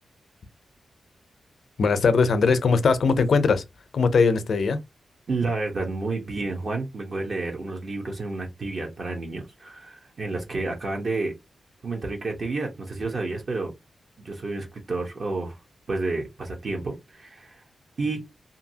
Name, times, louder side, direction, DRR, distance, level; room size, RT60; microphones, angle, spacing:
voice 1, 1.8-3.6 3.9-4.8, left 4 dB, 70° left, 0.5 m, -20 dB
voice 2, 5.3-11.3 11.8-13.7 14.2-15.6 15.9-17.6 18.0-18.3, right 3 dB, 55° right, 0.8 m, -30 dB
2.7 x 2.6 x 2.7 m
cardioid pair, 75°, 0 cm